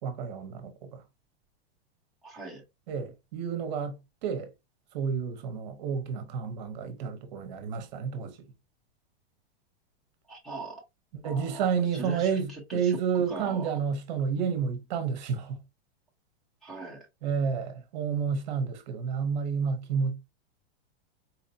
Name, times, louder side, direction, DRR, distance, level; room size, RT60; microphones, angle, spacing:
voice 1, 0.0-1.0 2.9-4.5 4.9-8.4 11.2-15.6 17.2-20.1, right 6 dB, 45° right, 0.9 m, -30 dB
voice 2, 2.2-2.6 10.3-10.8 11.2-13.7 16.6-17.0, right 2 dB, ahead, 0.8 m, -40 dB
4.3 x 2.8 x 2.6 m
supercardioid pair, 175°, 32 cm